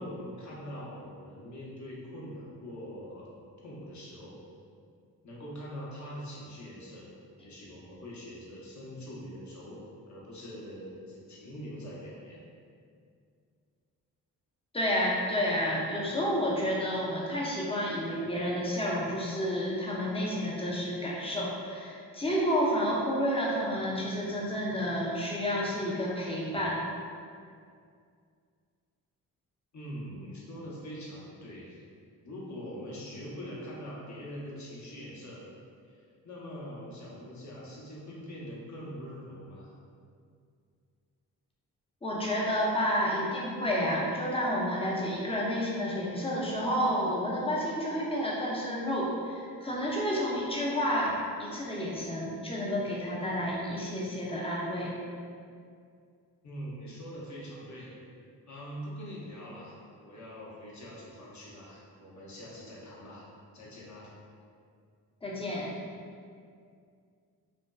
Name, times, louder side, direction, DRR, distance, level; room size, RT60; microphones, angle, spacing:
voice 1, 0.0-3.3 3.6-4.4 5.2-7.1 7.4-12.4 29.7-31.8 32.2-35.4 35.9-39.7 56.4-57.9 58.5-63.3 63.5-64.1, equal, 40° left, -5 dB, 0.8 m, -43 dB
voice 2, 14.7-26.8 42.0-55.0 65.2-65.7, equal, 15° left, -5 dB, 0.6 m, -30 dB
2.5 x 2.2 x 2.2 m, 2.2 s
hypercardioid pair, 45°, 44 cm